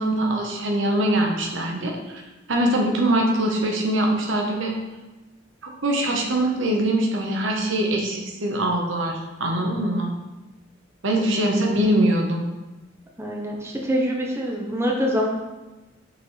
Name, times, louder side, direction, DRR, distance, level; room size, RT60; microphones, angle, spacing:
voice 1, 0.0-2.0 2.5-4.7 5.6-10.1 11.0-12.4, right 1 dB, 75° right, 1 dB, 1.0 m, -23 dB
voice 2, 13.2-15.3, equal, 15° right, -1 dB, 0.7 m, -25 dB
5.9 x 5.1 x 3.2 m, 1.1 s
head